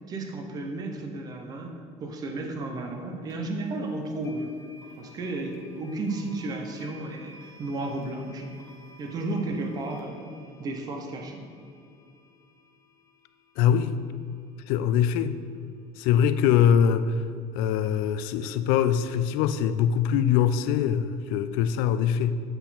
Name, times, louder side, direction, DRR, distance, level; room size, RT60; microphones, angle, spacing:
voice 1, 0.1-1.7 2.0-4.5 5.0-8.6 9.0-10.3 10.6-11.4, right 2 dB, 25° right, 3 dB, 0.6 m, -33 dB
sound 1, 3.3-3.4 4.2-15.2, left 1 dB, 20° left, 0.5 m, -52 dB
voice 2, 13.6-14.0 14.7-15.4 16.0-17.1 17.5-22.3, left 9 dB, 75° left, 12 dB, 0.4 m, -23 dB
7.8 x 4.2 x 4.1 m, 2.3 s
cardioid pair, 175°, 15 cm